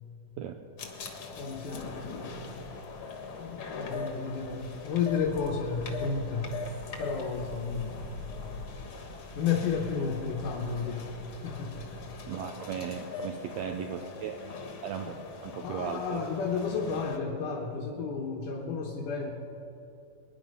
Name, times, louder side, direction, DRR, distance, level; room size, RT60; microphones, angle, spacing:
sound 1, 0.8-17.2, left 4 dB, 50° left, 1.9 m, -41 dB
voice 1, 1.3-2.8 3.4-6.6 7.0-8.3 9.4-11.9 15.6-19.3, left 5 dB, 80° left, -2 dB, 2.9 m, -32 dB
voice 2, 12.3-14.4 14.8-16.3, right 7 dB, 75° right, 5 dB, 1.7 m, -37 dB
23.0 x 10.5 x 5.5 m, 2.7 s
omnidirectional pair, 3.7 m